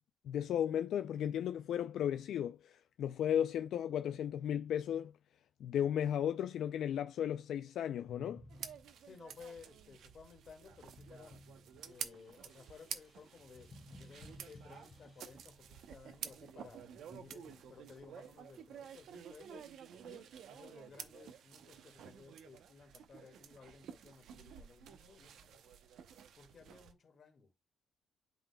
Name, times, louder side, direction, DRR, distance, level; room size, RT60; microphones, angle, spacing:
voice 1, 0.3-5.1 5.6-8.4, left 9 dB, 80° left, 0.3 m, -35 dB
sound 1, 8.1-9.3 10.5-15.9 16.6-18.0, left 1 dB, 30° left, 1.9 m, -58 dB
sound 2, 8.5-26.9, right 8 dB, 85° right, 0.7 m, -51 dB
voice 2, 9.0-11.4 11.9-13.7 14.0-16.8 17.1-19.7 20.0-25.8 26.4-27.5, left 5 dB, 45° left, 1.9 m, -57 dB
11.5 x 3.9 x 2.2 m
cardioid pair, 145°, 0 cm